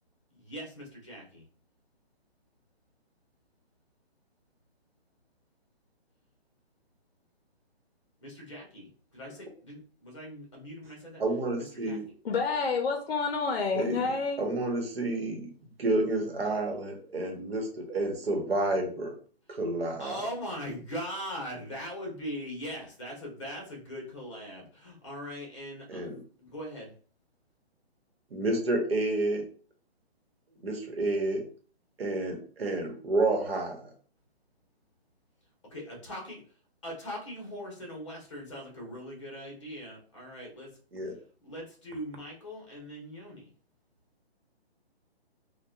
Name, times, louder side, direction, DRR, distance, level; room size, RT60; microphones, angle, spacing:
voice 1, 0.3-1.5 8.2-11.2 11.6-12.1 20.0-26.1 26.4-26.9 35.7-36.4 36.8-40.7 41.4-43.4, equal, 30° left, 0.8 m, -40 dB
voice 2, 11.2-12.0 13.7-15.5 15.8-19.1 19.5-20.2 25.9-26.2 28.3-29.4 30.6-31.5 32.0-33.8 40.9-41.1, right 2 dB, 65° right, 1.0 m, -30 dB
voice 3, 12.2-14.4, left 4 dB, 65° left, 0.5 m, -28 dB
2.8 x 2.2 x 2.3 m
hypercardioid pair, 175°, 32 cm